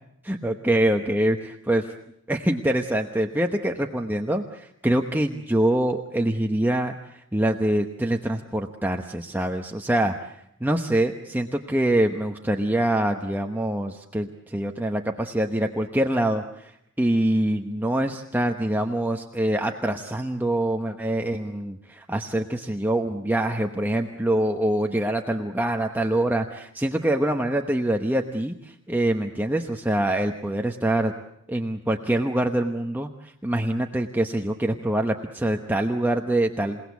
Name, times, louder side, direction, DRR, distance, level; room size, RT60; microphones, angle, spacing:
voice 1, 0.2-1.9 2.3-31.1 31.5-36.8, right 1 dB, 10° right, 3 dB, 1.0 m, -25 dB
28.0 x 18.5 x 8.3 m, 0.77 s
head